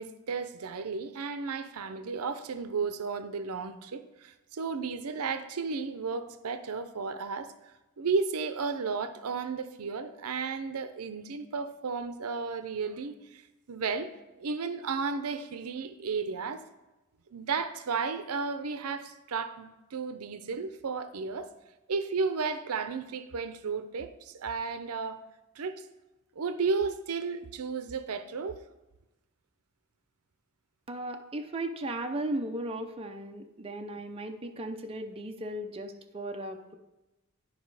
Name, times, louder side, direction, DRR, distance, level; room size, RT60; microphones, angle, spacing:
voice 1, 0.0-7.5 8.0-13.4 13.7-14.1 14.4-16.6 17.3-21.5 21.9-25.2 25.6-25.8 26.4-28.6, right 5 dB, 80° right, 0.6 m, -33 dB
voice 2, 30.9-36.8, right 1 dB, 25° right, 0.5 m, -36 dB
10.5 x 5.0 x 4.7 m
head